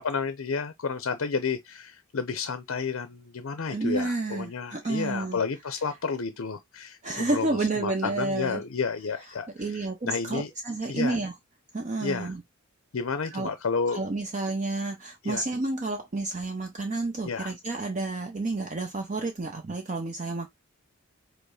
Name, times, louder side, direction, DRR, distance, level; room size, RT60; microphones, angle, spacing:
voice 1, 0.0-10.5 10.9-11.2 12.0-12.3 12.9-14.0 15.2-15.4 17.2-17.5, left 5 dB, 65° left, 0.6 m, -31 dB
voice 2, 3.7-5.4 7.0-8.6 9.6-11.3 11.7-12.4 13.3-13.5 13.9-20.5, right 2 dB, 35° right, 0.6 m, -30 dB
5.1 x 2.0 x 4.7 m
head